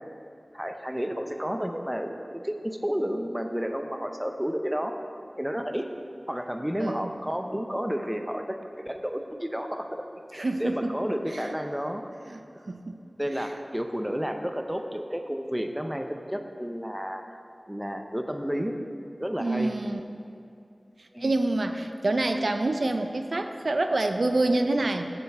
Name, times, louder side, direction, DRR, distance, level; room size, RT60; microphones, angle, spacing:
voice 1, 0.5-5.0 5.4-5.9 6.3-10.0 10.3-12.0 13.2-17.2 17.7-18.8 19.2-19.7 21.1-21.3, equal, 10° right, 5 dB, 0.5 m, -31 dB
voice 2, 6.8-7.1 10.4-10.9 11.3-11.6 12.3-12.4 12.7-13.0 19.4-20.0 21.2-25.1, right 2 dB, 80° right, 6 dB, 0.4 m, -27 dB
6.9 x 6.8 x 4.3 m, 2.5 s
wide cardioid pair, 55°, 0 cm